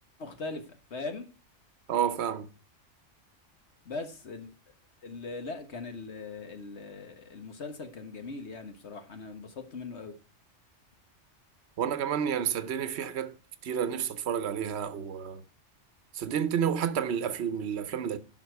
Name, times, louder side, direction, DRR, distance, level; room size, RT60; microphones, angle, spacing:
voice 1, 0.2-1.2 3.8-4.5 5.0-10.1, left 3 dB, 65° left, 1.6 m, -40 dB
voice 2, 1.9-2.5 11.8-13.3 13.6-15.4 16.1-18.2, right 8 dB, 65° right, 1.1 m, -30 dB
11.5 x 6.0 x 4.6 m
omnidirectional pair, 1.2 m